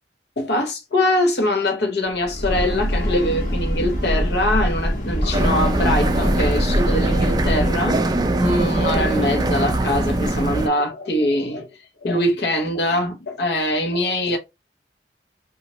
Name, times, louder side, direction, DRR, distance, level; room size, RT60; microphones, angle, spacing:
voice 1, 0.4-8.0 8.4-11.7 12.0-14.4, left 1 dB, 65° left, 0.8 m, -22 dB
Breathing / Train, 2.1-7.9, equal, 50° left, 1.2 m, -24 dB
sound 1, 5.3-10.7, right 1 dB, 25° right, 0.4 m, -22 dB
2.9 x 2.4 x 2.8 m
head